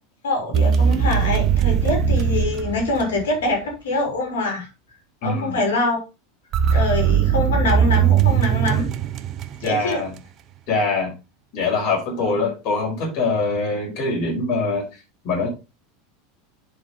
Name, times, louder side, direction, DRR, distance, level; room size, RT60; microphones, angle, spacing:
voice 1, 0.2-4.7 5.2-6.0 6.7-8.9 9.6-10.0 12.2-12.5, left 2 dB, 65° left, 1 dB, 4.0 m, -24 dB
sound 1, 0.5-3.5 6.5-10.0, right 8 dB, 40° right, 0.9 m, -19 dB
voice 2, 5.2-5.6 9.6-10.1 10.7-11.1 11.5-14.9 15.2-15.5, left 3 dB, 50° left, -1 dB, 5.9 m, -23 dB
11.0 x 5.2 x 3.8 m, 0.28 s
figure-of-eight pair, 80°, 0 cm